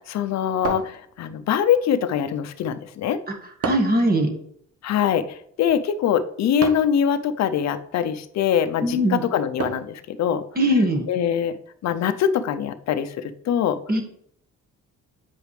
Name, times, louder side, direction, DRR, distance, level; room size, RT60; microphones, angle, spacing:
voice 1, 0.0-3.2 4.8-10.4 11.1-11.5 11.8-13.8, left 8 dB, 65° left, 11 dB, 0.6 m, -23 dB
sound 1, 0.6-1.5 3.6-4.1 6.6-7.0 9.6-10.0, right 5 dB, 50° right, 1.1 m, -30 dB
voice 2, 3.6-4.3 8.8-9.2 10.6-11.0 13.9-14.0, equal, 30° right, 2 dB, 1.6 m, -20 dB
8.5 x 5.0 x 3.3 m, 0.67 s
cardioid pair, 90°, 30 cm